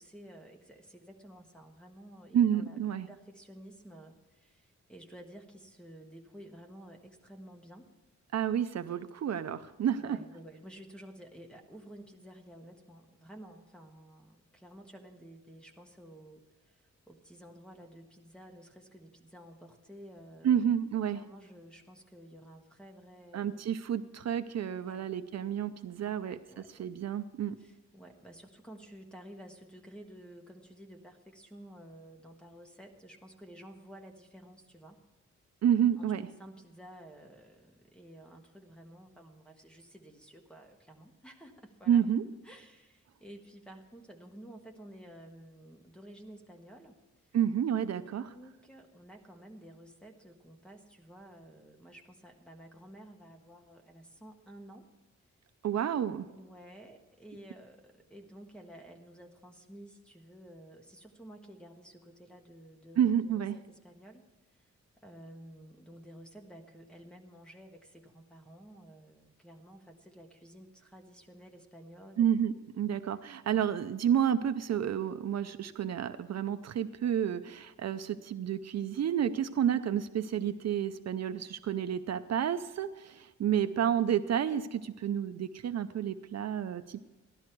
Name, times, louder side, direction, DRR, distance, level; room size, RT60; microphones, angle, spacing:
voice 1, 0.0-7.9 9.9-20.7 21.1-23.6 24.7-25.1 26.1-26.9 27.6-35.0 36.0-42.1 42.4-47.0 47.9-54.9 56.3-64.7 65.0-72.4 83.6-84.0, right 1 dB, 5° left, 2 dB, 1.4 m, -52 dB
voice 2, 2.3-3.1 8.3-10.2 20.4-21.2 23.3-27.6 35.6-36.3 41.9-42.2 47.3-48.3 55.6-56.3 63.0-63.6 72.2-87.0, right 9 dB, 65° right, 10 dB, 0.5 m, -30 dB
15.0 x 11.5 x 4.5 m, 1.1 s
wide cardioid pair, 165°, 29 cm